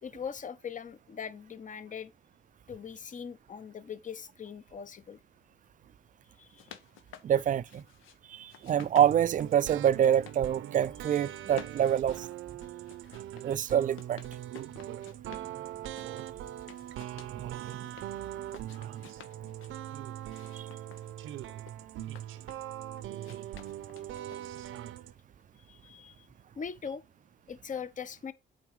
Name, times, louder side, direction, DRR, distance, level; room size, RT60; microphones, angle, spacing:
voice 1, 0.0-2.1 2.7-5.2 6.4-6.7 15.3-15.4 25.6-26.3 26.6-27.0 27.5-28.3, left 7 dB, 40° left, 0.9 m, -41 dB
sound 1, 6.3-8.2 8.5-10.4 10.7-11.2 11.5-15.5 15.8-18.1 18.4-19.7 20.2-22.7 23.2-24.7, left 9 dB, 85° left, 1.1 m, -52 dB
voice 2, 7.2-7.8 8.3-12.3 13.4-14.2 20.5-20.6, right 10 dB, 40° right, 0.4 m, -26 dB
sound 2, 9.0-25.1, right 12 dB, 85° right, 0.8 m, -41 dB
8.4 x 4.0 x 4.7 m
cardioid pair, 90°, 20 cm